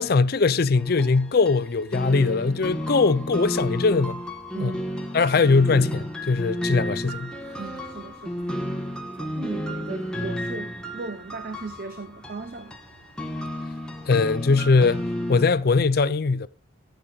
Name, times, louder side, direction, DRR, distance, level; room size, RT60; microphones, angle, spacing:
voice 1, 0.0-4.2 4.6-4.7 5.1-7.3 14.1-16.5, left 4 dB, 50° left, 0.5 m, -21 dB
sound 1, 0.8-15.5, equal, 5° left, 1.2 m, -32 dB
voice 2, 4.5-5.3 7.6-8.5 9.2-12.8, right 3 dB, 50° right, 0.7 m, -38 dB
sound 2, 6.8-15.9, right 1 dB, 90° right, 4.7 m, -57 dB
15.0 x 10.5 x 2.4 m
head